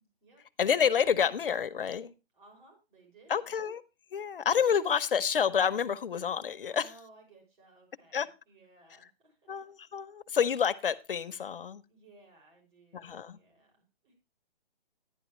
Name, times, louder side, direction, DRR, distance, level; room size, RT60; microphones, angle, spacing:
voice 1, 0.6-2.1 3.3-3.8 4.1-6.8 8.1-8.3 9.5-11.8 12.9-13.4, left 7 dB, 60° left, 12 dB, 0.8 m, -28 dB
voice 2, 2.3-3.5 6.7-9.5 11.9-14.1, right 2 dB, 50° right, 1 dB, 5.9 m, -59 dB
11.0 x 10.5 x 3.0 m, 0.29 s
hypercardioid pair, 165°, 31 cm